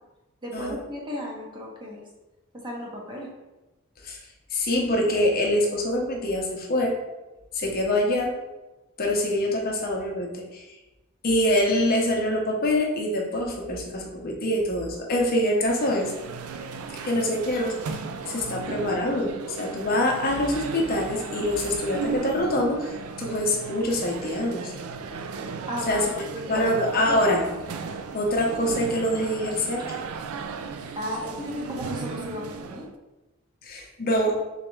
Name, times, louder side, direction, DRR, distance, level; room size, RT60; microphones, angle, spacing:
voice 1, 0.4-2.0 2.5-3.3 25.7-27.2 31.0-32.4 32.7-32.9, equal, 20° right, -2 dB, 0.8 m, -34 dB
voice 2, 4.5-7.0 7.5-8.3 9.0-10.6 11.2-16.1 17.0-18.0 18.3-19.3 19.6-24.7 25.9-26.0 26.5-27.4 28.1-30.0 33.6-34.4, left 1 dB, 45° left, 0 dB, 0.7 m, -25 dB
sound 1, 15.6-32.9, right 5 dB, 80° right, 0.4 m, -36 dB
3.8 x 3.3 x 3.0 m, 1.1 s
head